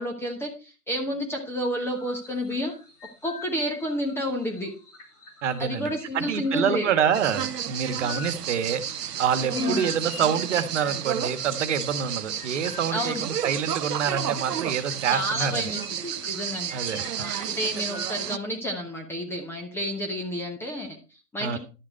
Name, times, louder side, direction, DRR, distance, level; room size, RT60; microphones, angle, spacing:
voice 1, 0.0-2.7 3.2-4.7 5.6-6.9 9.5-9.8 12.9-13.2 15.0-16.7 17.2-21.6, equal, 5° left, 3 dB, 1.0 m, -30 dB
sound 1, 1.8-18.1, left 4 dB, 70° left, 3.9 m, -46 dB
voice 2, 5.4-5.9 6.1-8.8 9.2-15.7 16.7-17.0 21.4-21.6, right 7 dB, 50° right, 11 dB, 1.5 m, -26 dB
sound 2, 7.1-18.4, right 9 dB, 80° right, 0.7 m, -32 dB
11.0 x 7.5 x 4.4 m, 0.32 s
figure-of-eight pair, 130°, 47 cm